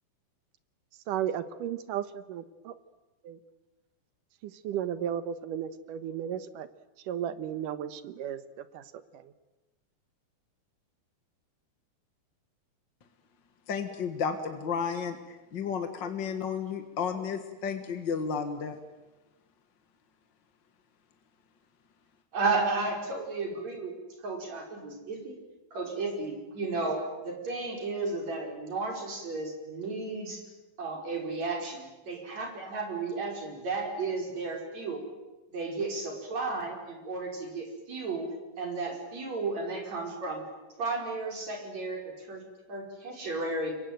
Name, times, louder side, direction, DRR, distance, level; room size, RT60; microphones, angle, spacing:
voice 1, 1.1-2.7 3.3-3.4 4.4-6.7 7.1-8.8 9.1-9.3, right 9 dB, 70° right, 13 dB, 2.6 m, -34 dB
voice 2, 13.7-18.7, left 6 dB, 45° left, 7 dB, 1.6 m, -32 dB
voice 3, 22.3-23.9 24.2-25.3 25.7-30.4 30.8-35.0 35.5-38.3 38.6-40.4 40.8-42.4 42.7-43.7, right 3 dB, 50° right, 2 dB, 6.5 m, -33 dB
27.5 x 23.5 x 9.2 m, 1.1 s
omnidirectional pair, 4.2 m